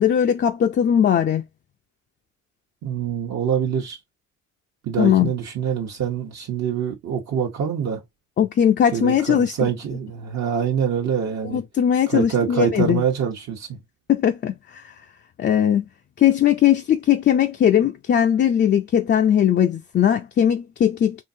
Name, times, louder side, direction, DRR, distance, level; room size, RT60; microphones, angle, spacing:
voice 1, 0.0-1.4 5.0-5.3 8.4-9.7 11.5-13.0 14.1-14.9 15.4-15.8 16.2-21.2, left 9 dB, 35° left, 0.4 m, -19 dB
voice 2, 2.8-4.0 4.8-8.0 8.9-11.6 12.1-13.8, right 7 dB, 60° right, 1.0 m, -25 dB
3.7 x 2.6 x 2.6 m
cardioid pair, 90°, 30 cm